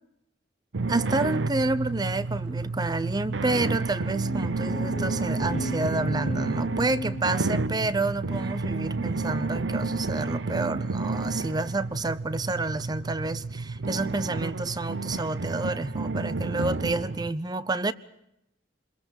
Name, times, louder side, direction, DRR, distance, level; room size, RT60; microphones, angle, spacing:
sound 1, 0.7-17.3, right 3 dB, 75° right, 0.8 m, -30 dB
voice 1, 0.9-17.9, right 2 dB, 20° right, 0.7 m, -29 dB
sound 2, 4.2-8.0, left 1 dB, 40° left, 1.0 m, -37 dB
27.5 x 22.0 x 5.3 m
head